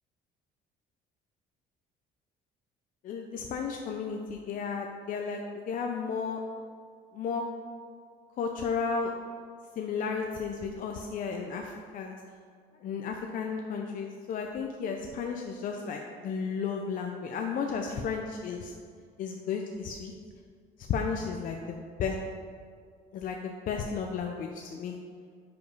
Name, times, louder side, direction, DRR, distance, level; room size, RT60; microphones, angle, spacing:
voice 1, 3.0-6.4 7.1-7.5 8.4-9.1 9.8-12.2 12.8-18.7 19.2-20.1 20.9-22.2 23.1-25.0, left 5 dB, 55° left, 2 dB, 0.5 m, -33 dB
5.1 x 5.1 x 4.7 m, 2.1 s
cardioid pair, 110°, 17 cm